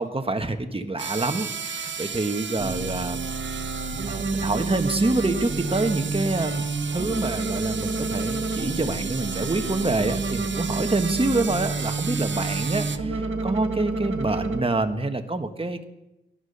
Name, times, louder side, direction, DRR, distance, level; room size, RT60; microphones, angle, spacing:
voice 1, 0.0-3.3 4.1-15.8, right 2 dB, 30° right, 7 dB, 1.4 m, -27 dB
sound 1, 1.0-13.0, right 6 dB, 70° right, 0.8 m, -35 dB
sound 2, 2.6-14.6, right 3 dB, 90° right, 1.7 m, -29 dB
18.0 x 12.0 x 5.5 m, 0.90 s
cardioid pair, 55°, 20 cm